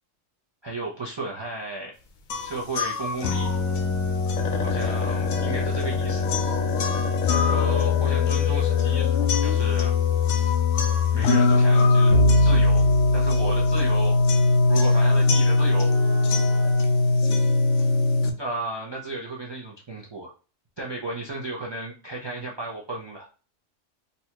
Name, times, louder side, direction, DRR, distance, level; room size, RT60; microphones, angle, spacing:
voice 1, 0.6-1.9 2.4-3.6 4.3-6.3 7.3-9.9 11.1-12.1 12.4-14.2 14.7-15.9 18.4-20.3 20.8-23.3, right 2 dB, 30° right, -3 dB, 0.5 m, -34 dB
sound 1, 2.0-2.8 3.1-3.2 3.6-3.7 4.0-4.1 4.4-10.7 11.8-11.9 12.2-12.5 12.8-13.1 13.6-13.7 14.0-14.4 15.0-16.7, left 6 dB, 60° left, 0.5 m, -34 dB
sound 2, 2.3-18.3, left 3 dB, 75° left, 0.9 m, -21 dB
sound 3, 12.1-14.7, right 5 dB, 30° left, 0.8 m, -28 dB
4.0 x 2.3 x 2.9 m, 0.36 s
omnidirectional pair, 1.3 m